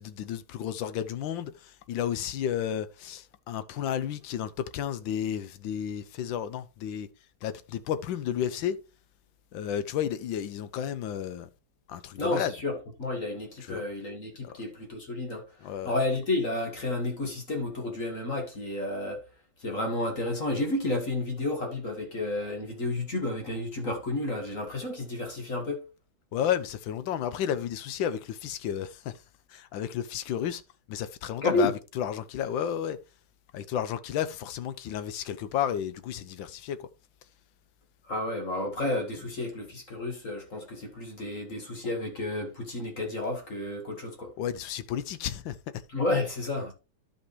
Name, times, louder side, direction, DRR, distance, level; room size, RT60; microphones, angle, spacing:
voice 1, 0.0-7.1 7.4-8.8 9.5-11.5 11.9-12.5 13.6-13.8 14.4-14.6 15.6-15.9 26.3-29.2 29.5-30.6 30.9-33.0 33.5-36.9 44.4-45.8, left 9 dB, 70° left, 1.4 m, -32 dB
voice 2, 12.2-15.4 15.8-19.2 19.6-25.8 31.4-31.7 38.1-44.3 45.9-46.7, left 2 dB, 40° left, 1.9 m, -31 dB
11.5 x 5.3 x 3.1 m
omnidirectional pair, 2.3 m